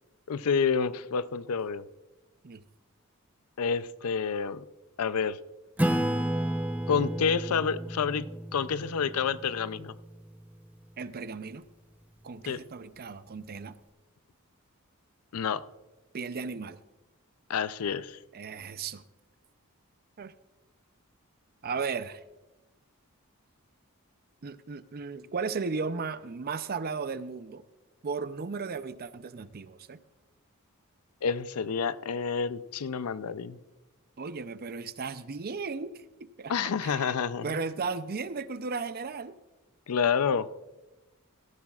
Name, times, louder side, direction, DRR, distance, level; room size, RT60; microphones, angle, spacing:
voice 1, 0.3-1.8 3.6-4.6 5.0-5.4 6.9-9.9 12.5-12.6 15.3-15.6 17.5-18.2 31.2-33.6 36.5-37.6 39.9-40.6, left 6 dB, 85° left, 15 dB, 0.5 m, -29 dB
Acoustic guitar / Strum, 5.8-10.8, right 1 dB, 5° right, 0.7 m, -32 dB
voice 2, 11.0-11.6 12.2-13.8 16.1-16.8 18.3-19.0 20.2-20.3 21.6-22.2 24.4-27.6 28.0-30.0 34.2-37.1 37.4-39.3, right 4 dB, 45° right, 13 dB, 0.5 m, -35 dB
17.0 x 14.5 x 2.4 m, 1.1 s
head